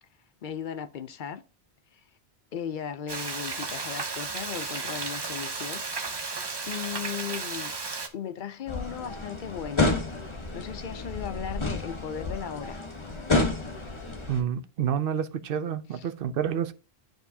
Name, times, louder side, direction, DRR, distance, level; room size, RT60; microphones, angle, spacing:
voice 1, 0.4-1.4 1.9-2.0 2.5-5.8 6.7-7.7 8.1-9.9 10.5-12.8 15.9-16.0, left 8 dB, 60° left, 0.6 m, -36 dB
Frying (food), 3.1-8.1, right 4 dB, 30° right, 0.6 m, -34 dB
sound 1, 8.7-14.4, left 2 dB, 30° left, 1.0 m, -30 dB
voice 2, 14.3-16.7, right 8 dB, 65° right, 0.8 m, -29 dB
10.5 x 4.6 x 2.7 m
omnidirectional pair, 1.0 m